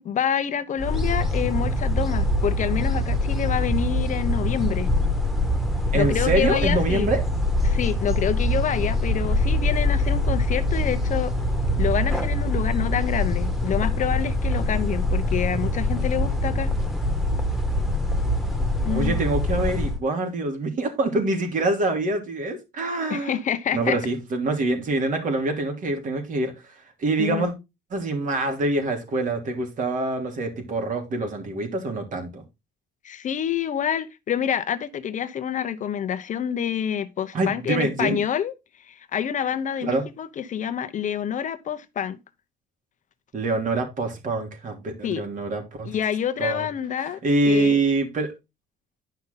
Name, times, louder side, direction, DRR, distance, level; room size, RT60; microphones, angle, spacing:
voice 1, 0.0-4.9 5.9-7.1 7.6-11.3 11.8-16.7 18.8-19.2 23.1-24.0 27.2-27.5 33.0-42.2 45.0-45.2 45.8-47.2 47.4-47.8, left 8 dB, 50° left, 0.9 m, -27 dB
sound 1, 0.8-20.0, left 1 dB, ahead, 1.8 m, -24 dB
voice 2, 5.9-7.2 18.9-23.4 23.7-26.5 27.0-27.5 27.9-32.4 37.3-38.2 39.8-40.0 43.3-45.9 46.4-46.7 47.2-48.3, right 2 dB, 50° right, 3.1 m, -25 dB
10.5 x 5.6 x 3.9 m
cardioid pair, 110°, 17 cm